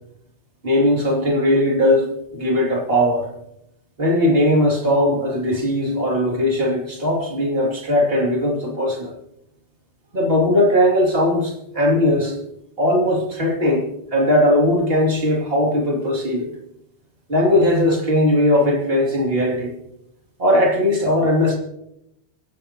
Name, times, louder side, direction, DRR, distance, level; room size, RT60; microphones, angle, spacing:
voice 1, 0.6-2.1 2.3-3.3 4.0-9.2 10.1-12.3 12.8-16.5 17.3-19.7 20.4-21.6, left 1 dB, 55° right, -1 dB, 2.9 m, -19 dB
26.0 x 11.5 x 2.9 m, 0.82 s
omnidirectional pair, 1.2 m